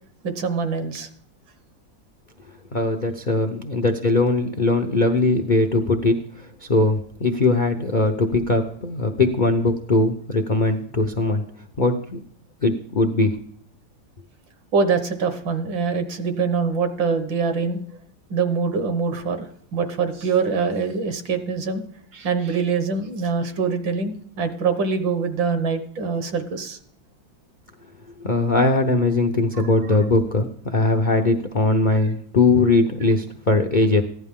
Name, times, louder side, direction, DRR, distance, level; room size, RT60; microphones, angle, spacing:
voice 1, 0.2-1.1 14.7-17.8 18.3-21.8 22.1-26.8 29.5-29.7 31.9-32.0, right 5 dB, 75° right, 8 dB, 1.9 m, -24 dB
voice 2, 2.7-11.4 11.8-12.2 12.6-13.3 28.2-34.0, left 2 dB, 80° left, 3 dB, 0.4 m, -20 dB
15.5 x 11.0 x 3.6 m, 0.65 s
omnidirectional pair, 2.1 m